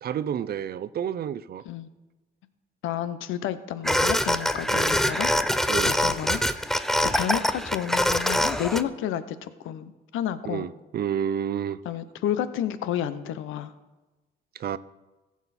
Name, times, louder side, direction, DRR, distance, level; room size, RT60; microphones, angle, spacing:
voice 1, 0.0-1.6 4.7-4.9 5.7-5.9 10.4-11.8 14.6-14.8, right 9 dB, 50° right, 16 dB, 0.5 m, -30 dB
voice 2, 2.8-5.3 5.9-6.4 7.0-10.7 11.8-13.7, left 10 dB, 85° left, 13 dB, 0.7 m, -30 dB
sound 1, 3.8-8.8, equal, ahead, 0.5 m, -24 dB
15.0 x 7.2 x 4.2 m, 1.1 s
cardioid pair, 90°, 20 cm